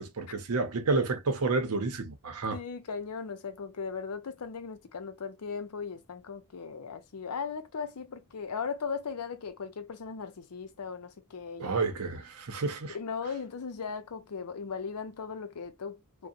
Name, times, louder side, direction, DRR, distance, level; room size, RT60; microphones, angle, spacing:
voice 1, 0.0-2.6 11.6-13.0, right 3 dB, 75° right, 0.7 m, -30 dB
voice 2, 2.5-11.9 12.9-16.3, left 5 dB, 85° left, 0.6 m, -38 dB
2.7 x 2.1 x 2.4 m
head